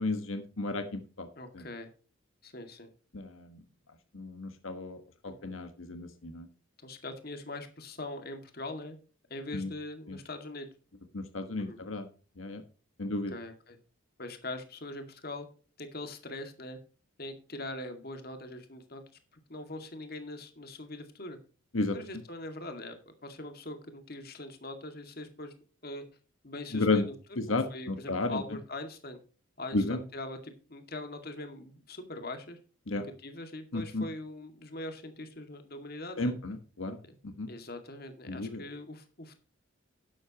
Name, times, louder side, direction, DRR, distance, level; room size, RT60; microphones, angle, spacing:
voice 1, 0.0-1.3 1.5-1.6 3.1-3.6 4.1-5.0 5.2-6.5 9.5-9.7 10.1-10.2 11.1-12.1 12.4-12.6 13.0-13.3 21.7-21.9 26.7-27.0 27.4-28.4 29.7-30.0 32.9-33.0 33.7-34.0 36.2-37.0 37.2-37.5 38.3-38.6, left 2 dB, 85° left, 7 dB, 1.4 m, -32 dB
voice 2, 1.4-1.9 2.4-2.9 5.3-5.5 6.8-9.0 9.3-10.7 11.6-11.8 13.3-13.8 14.2-15.5 15.8-16.8 17.2-19.0 19.5-21.4 21.9-25.5 25.8-26.0 26.4-27.1 27.5-29.2 29.6-32.6 32.9-36.3 37.0-37.2 37.5-39.4, left 2 dB, 50° left, 6 dB, 2.1 m, -42 dB
12.0 x 11.0 x 3.0 m, 0.37 s
head